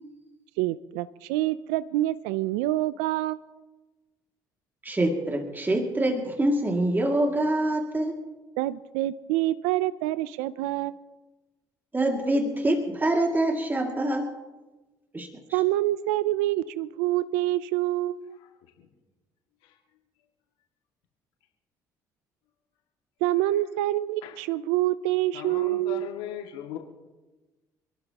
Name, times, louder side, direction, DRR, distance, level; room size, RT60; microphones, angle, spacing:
voice 1, 0.6-3.4 8.6-11.0 15.5-18.4 23.2-26.1, right 15 dB, 85° right, 16 dB, 0.5 m, -26 dB
voice 2, 4.8-8.1 11.9-14.3 15.1-15.3, right 1 dB, 20° right, 2 dB, 2.3 m, -25 dB
voice 3, 18.4-18.9 19.6-19.8 23.5-23.6 24.2-24.4 25.3-26.8, left 10 dB, 75° left, 1 dB, 2.2 m, -39 dB
27.0 x 12.5 x 2.9 m, 1.2 s
hypercardioid pair, 60°, 9 cm